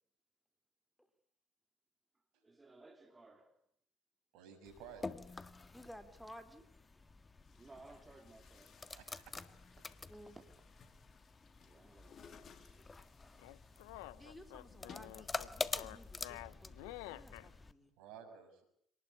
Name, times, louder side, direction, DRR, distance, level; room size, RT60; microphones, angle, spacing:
voice 1, 2.1-3.6 7.6-8.8 9.9-10.4 11.6-12.9 13.2-13.8 15.1-15.3, right 2 dB, 20° right, 3.4 m, -60 dB
voice 2, 4.3-5.0 8.9-9.4 14.2-14.3 18.0-18.6, right 7 dB, 70° right, 6.4 m, -54 dB
sound 1, 4.7-17.7, left 3 dB, 25° left, 1.7 m, -47 dB
voice 3, 5.7-6.6 10.1-10.4 14.2-17.9, equal, 5° left, 4.1 m, -55 dB
Chatter / Gurgling / Tap, 7.3-16.4, left 7 dB, 45° left, 3.0 m, -63 dB
sound 2, 13.4-17.5, left 17 dB, 75° left, 1.0 m, -50 dB
27.0 x 20.0 x 8.6 m
hypercardioid pair, 65°, 0 cm